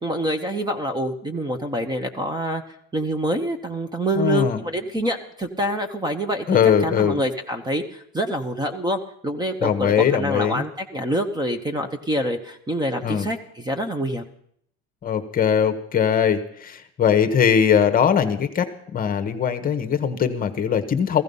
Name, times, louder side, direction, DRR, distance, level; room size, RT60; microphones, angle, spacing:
voice 1, 0.0-2.6 2.9-14.3, right 1 dB, 15° right, 8 dB, 1.0 m, -26 dB
voice 2, 4.2-4.6 6.5-7.2 9.6-10.6 13.0-13.3 15.0-21.2, left 8 dB, 30° left, 8 dB, 1.1 m, -20 dB
15.5 x 15.5 x 5.4 m, 0.67 s
cardioid pair, 160°, 30 cm